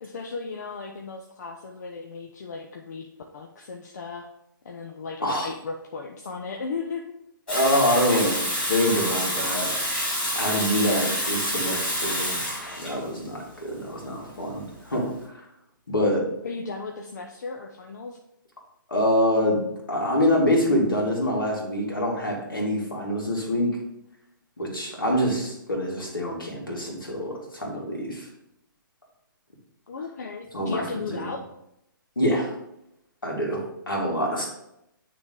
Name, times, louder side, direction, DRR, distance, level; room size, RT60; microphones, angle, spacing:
voice 1, 0.0-3.1 3.3-4.3 4.6-7.1 16.4-18.2 29.9-31.4, left 4 dB, 55° left, 3 dB, 0.6 m, -35 dB
voice 2, 7.5-9.7 10.4-12.5 12.8-14.6 14.9-15.1 15.9-16.2 18.9-19.6 19.9-23.7 24.6-28.3 30.5-30.8 31.1-31.3 32.2-32.5 33.2-34.5, equal, 75° left, -2 dB, 2.3 m, -25 dB
Water tap faucet / Sink (filling or washing), 7.5-15.1, equal, 10° left, 2.2 m, -28 dB
9.1 x 3.4 x 3.6 m, 0.82 s
figure-of-eight pair, 130°, 11 cm